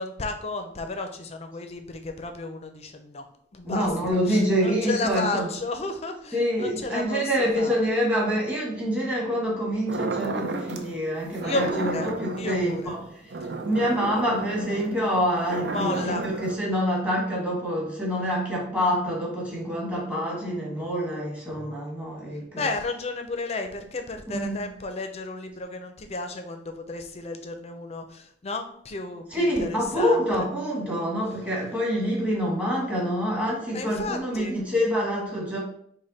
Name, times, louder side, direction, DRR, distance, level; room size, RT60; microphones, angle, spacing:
voice 1, 0.0-3.3 3.5-7.8 11.4-13.0 15.7-16.3 22.6-30.4 33.7-34.6, left 2 dB, 35° left, 6 dB, 0.5 m, -33 dB
voice 2, 3.6-5.4 6.3-13.0 13.6-22.6 24.3-24.6 29.3-35.6, equal, 10° right, -4 dB, 1.3 m, -26 dB
sound 1, 9.9-10.9 11.3-16.6, right 3 dB, 65° right, 0.5 m, -33 dB
5.2 x 2.2 x 4.0 m, 0.66 s
head